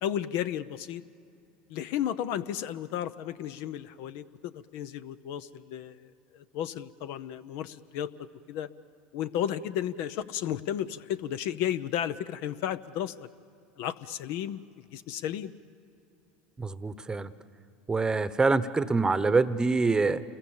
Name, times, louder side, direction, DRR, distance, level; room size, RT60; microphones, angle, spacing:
voice 1, 0.0-1.0 1.7-8.1 8.5-8.7 9.1-13.3 13.8-14.6 14.9-15.5, left 10 dB, 65° left, 13 dB, 0.7 m, -33 dB
voice 2, 16.6-17.3 17.9-20.2, right 3 dB, 15° right, 14 dB, 1.0 m, -25 dB
28.5 x 22.0 x 7.2 m, 2.7 s
supercardioid pair, 100°, 5 cm